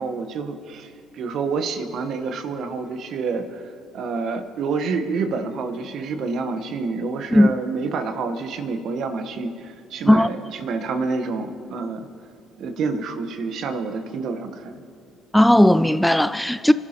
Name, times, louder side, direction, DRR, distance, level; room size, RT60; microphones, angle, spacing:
voice 1, 0.0-3.6 3.9-12.1 12.6-14.7, right 4 dB, 60° right, 1.1 m, -28 dB
voice 2, 15.3-16.7, left 1 dB, 5° left, 0.3 m, -15 dB
29.0 x 12.0 x 2.9 m
hypercardioid pair, 55°, 0 cm